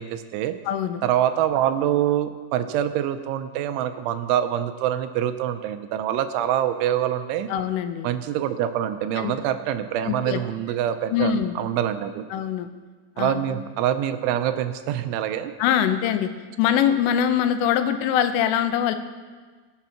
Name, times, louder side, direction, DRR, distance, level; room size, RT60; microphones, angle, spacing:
voice 1, 0.0-0.6 1.0-7.5 8.0-12.2 13.2-15.5, right 11 dB, 85° right, 9 dB, 3.1 m, -25 dB
voice 2, 0.7-1.0 7.5-8.1 9.2-9.3 10.1-10.4 11.1-11.5 12.3-12.7 13.2-13.4 15.6-16.3 16.6-19.0, left 9 dB, 85° left, 9 dB, 3.3 m, -23 dB
21.0 x 8.2 x 5.9 m, 1.4 s
omnidirectional pair, 5.6 m